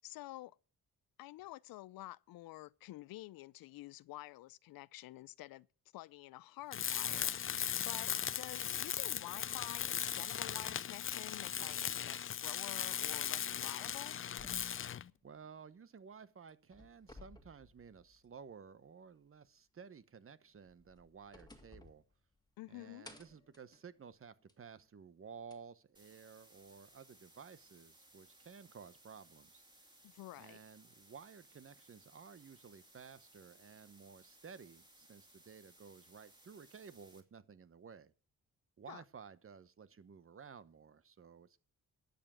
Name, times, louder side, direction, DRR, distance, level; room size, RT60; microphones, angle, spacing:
voice 1, 0.0-0.6 1.2-5.7 5.9-7.4 7.8-14.2 22.6-23.1 30.0-30.6 38.9-39.0, left 17 dB, 90° left, 0.5 m, -49 dB
Tools, 6.7-15.1, left 9 dB, 40° left, 0.5 m, -38 dB
sound 1, 14.4-16.1 16.5-18.5 18.8-18.9 20.6-22.7 23.0-24.7 25.5-25.6 26.7-26.8, left 2 dB, 10° left, 2.0 m, -59 dB
voice 2, 15.2-22.0 22.7-29.9 30.4-38.1 38.8-41.6, right 6 dB, 40° right, 1.0 m, -55 dB
sound 2, 25.9-37.2, right 1 dB, 15° right, 2.7 m, -64 dB
12.0 x 7.8 x 6.1 m
cardioid pair, 85°, 34 cm